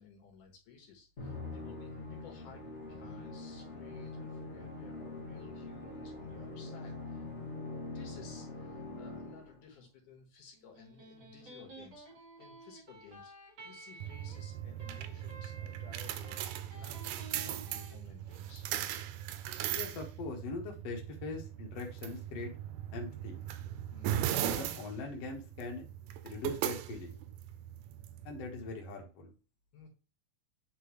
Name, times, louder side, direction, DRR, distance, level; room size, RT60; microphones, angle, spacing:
voice 1, 0.0-7.3 7.7-16.4 16.7-18.6 23.9-24.3 29.7-29.9, left 5 dB, 80° left, 1 dB, 3.0 m, -56 dB
Musical instrument, 1.2-9.7, left 3 dB, 25° left, 1.6 m, -43 dB
Electric guitar, 10.5-17.9, right 2 dB, 50° right, 4.8 m, -52 dB
sound 1, 14.0-28.7, right 11 dB, 90° right, 2.2 m, -39 dB
voice 2, 19.7-22.5 22.9-23.4 24.4-25.9 26.2-27.2 28.2-29.3, left 3 dB, 60° left, 1 dB, 2.3 m, -41 dB
8.4 x 4.6 x 3.1 m, 0.33 s
omnidirectional pair, 3.6 m